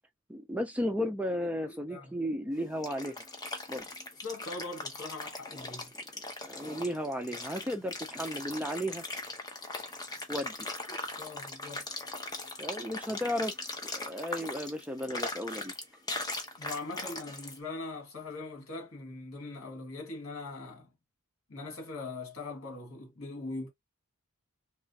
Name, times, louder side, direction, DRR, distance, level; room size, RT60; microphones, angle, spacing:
voice 1, 0.3-3.2 3.7-3.9 6.5-9.0 10.3-10.5 12.6-13.5 13.8-15.7, equal, 5° right, 0.4 m, -34 dB
voice 2, 1.7-2.2 4.2-5.9 10.9-11.9 16.6-20.9 21.5-23.7, left 3 dB, 70° left, 1.9 m, -41 dB
sound 1, 2.5-17.6, left 2 dB, 15° left, 0.7 m, -40 dB
3.2 x 3.0 x 2.7 m
head